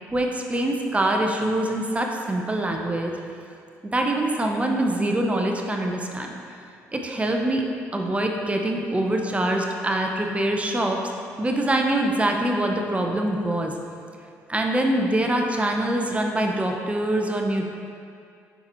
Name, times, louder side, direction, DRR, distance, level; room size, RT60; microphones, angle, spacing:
voice 1, 0.1-3.1 3.9-6.3 6.9-7.6 7.9-11.0 11.4-13.7 14.5-17.7, right 1 dB, 20° right, 2 dB, 0.8 m, -24 dB
9.2 x 4.2 x 3.1 m, 2.4 s
supercardioid pair, 70°, 7 cm